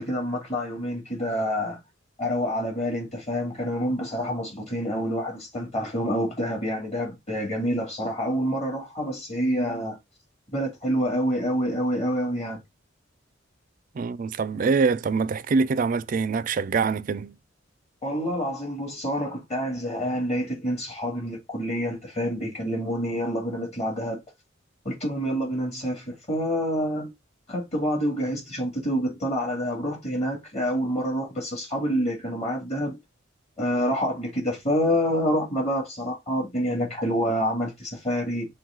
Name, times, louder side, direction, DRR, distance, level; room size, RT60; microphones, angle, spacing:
voice 1, 0.0-1.8 2.2-10.0 10.5-12.6 18.0-24.2 24.8-27.1 27.5-33.0 33.6-38.5, equal, 35° left, 2.2 m, -27 dB
voice 2, 14.0-17.4, right 4 dB, 45° right, 0.3 m, -24 dB
6.2 x 2.2 x 3.8 m
head